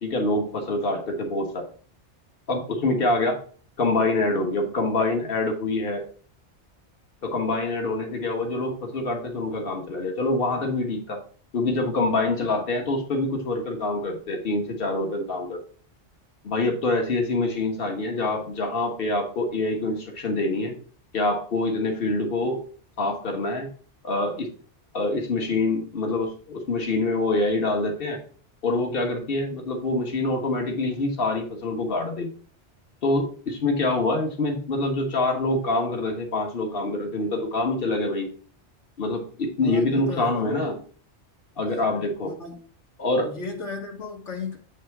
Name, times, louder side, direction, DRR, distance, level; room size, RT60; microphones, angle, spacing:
voice 1, 0.0-1.7 2.5-3.4 3.8-6.0 7.2-11.2 11.5-15.6 16.4-20.7 21.1-22.6 23.0-23.7 24.0-24.5 24.9-28.2 28.6-32.3 33.0-38.3 39.0-40.8 41.6-42.3 43.0-43.3, left 2 dB, 55° left, 1.6 m, -25 dB
voice 2, 39.6-40.6 42.2-42.6 43.2-44.6, left 4 dB, 85° left, 1.8 m, -35 dB
8.2 x 3.3 x 5.8 m
omnidirectional pair, 1.2 m